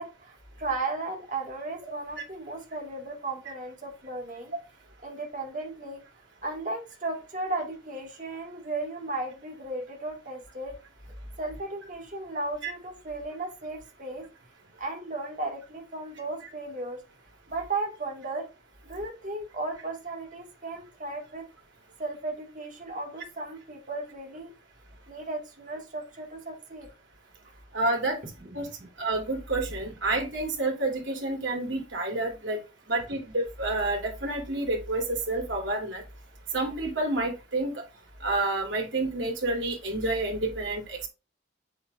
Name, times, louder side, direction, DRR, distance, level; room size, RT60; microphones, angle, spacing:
voice 1, 0.0-4.5 5.0-6.0 6.4-10.8 11.4-14.3 14.8-17.0 17.5-18.5 18.8-21.5 22.0-24.5 25.1-26.9 28.4-28.5 28.8-28.9, right 2 dB, 40° right, 2.1 m, -35 dB
voice 2, 27.7-28.2 28.5-28.7 29.0-32.6 32.9-36.0 36.5-37.7 38.2-41.1, right 2 dB, 80° right, 3.1 m, -29 dB
7.7 x 7.0 x 2.6 m
head